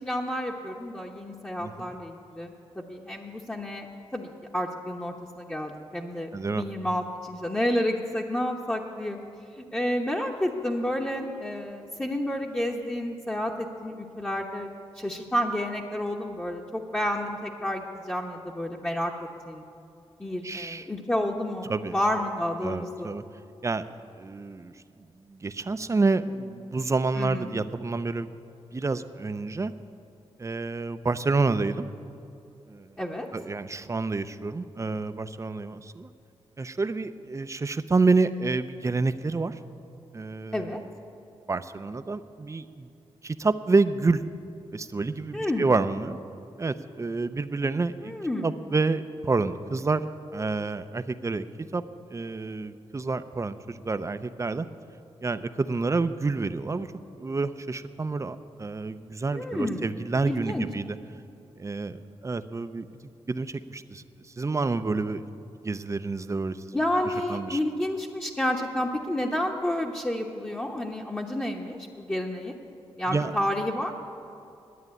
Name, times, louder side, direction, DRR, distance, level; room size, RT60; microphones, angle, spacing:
voice 1, 0.0-3.9 4.1-9.2 9.6-14.7 14.9-19.1 19.4-19.6 20.2-23.1 27.2-27.5 33.0-33.3 40.5-40.8 45.3-45.7 48.0-48.5 59.3-59.9 60.3-60.7 66.7-72.6 73.0-73.9, left 1 dB, 15° left, -2 dB, 1.0 m, -30 dB
voice 2, 1.6-1.9 6.3-6.6 20.4-20.9 21.7-21.9 22.6-23.2 23.6-24.7 25.3-28.3 28.7-29.7 30.4-31.9 32.7-32.9 33.3-36.1 36.6-39.6 40.1-40.8 41.5-42.9 43.2-44.2 44.7-46.2 46.6-48.1 48.4-51.5 51.7-51.8 52.1-54.7 55.2-56.9 57.2-61.0 61.6-62.9 63.3-64.0 64.4-65.2 65.6-66.6 67.0-67.6 73.1-73.3, right 3 dB, 30° right, 12 dB, 0.5 m, -28 dB
11.0 x 8.8 x 9.5 m, 2.6 s
cardioid pair, 75°, 11 cm